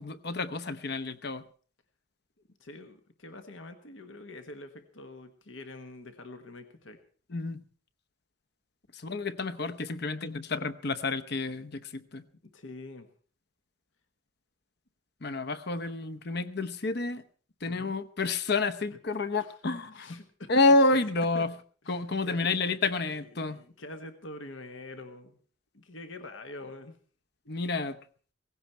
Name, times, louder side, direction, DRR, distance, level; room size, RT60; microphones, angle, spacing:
voice 1, 0.0-1.4 7.3-7.6 8.9-12.2 15.2-17.2 17.6-20.2 20.5-21.5 21.9-23.6 27.5-28.0, left 3 dB, 55° left, 13 dB, 0.9 m, -29 dB
voice 2, 2.6-7.0 12.4-13.1 17.7-18.0 19.4-19.6 19.9-20.8 21.3-21.5 21.8-22.6 23.2-25.4 25.7-27.0, left 2 dB, 75° left, 8 dB, 1.4 m, -45 dB
17.5 x 15.5 x 4.5 m, 0.42 s
head